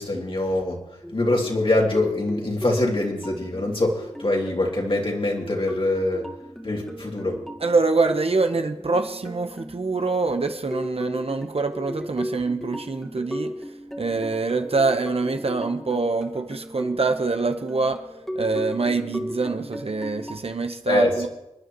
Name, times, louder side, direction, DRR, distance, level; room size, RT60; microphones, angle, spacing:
voice 1, 0.0-6.3 6.6-7.4 20.9-21.3, left 1 dB, 45° left, 2.8 m, -24 dB
sound 1, 1.0-20.4, equal, ahead, 1.8 m, -36 dB
voice 2, 7.6-13.6 14.0-18.0 18.3-21.3, right 3 dB, 55° right, 1.1 m, -25 dB
29.0 x 10.0 x 3.1 m
wide cardioid pair, 60°, 12 cm